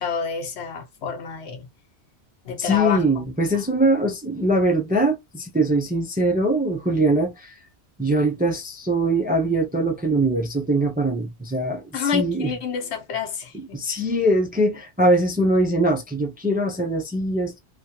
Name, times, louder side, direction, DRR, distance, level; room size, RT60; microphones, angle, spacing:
voice 1, 0.0-1.7 2.4-3.2 11.9-13.8, left 6 dB, 85° left, 1.1 m, -28 dB
voice 2, 2.6-7.6 8.0-12.5 13.5-17.6, right 1 dB, 15° right, 0.3 m, -22 dB
3.0 x 2.3 x 2.7 m
omnidirectional pair, 1.1 m